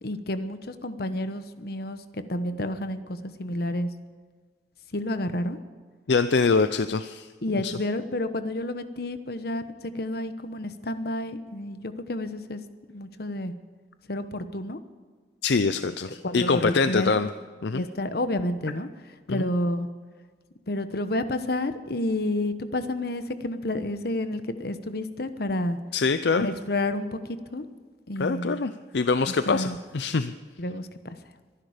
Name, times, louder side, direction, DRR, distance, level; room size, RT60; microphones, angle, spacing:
voice 1, 0.0-3.9 4.9-5.6 7.4-12.6 12.9-13.5 14.1-14.8 16.2-17.2 17.7-18.9 19.3-19.9 20.7-25.8 26.4-27.7 28.1-28.6 29.3-29.8 30.6-31.2, left 1 dB, 60° left, 10 dB, 1.1 m, -30 dB
voice 2, 6.1-7.3 7.6-7.7 15.4-17.3 17.6-17.8 19.3-19.5 25.9-26.5 28.2-30.3, left 4 dB, 75° left, 11 dB, 0.5 m, -24 dB
23.0 x 11.0 x 5.1 m, 1.5 s
head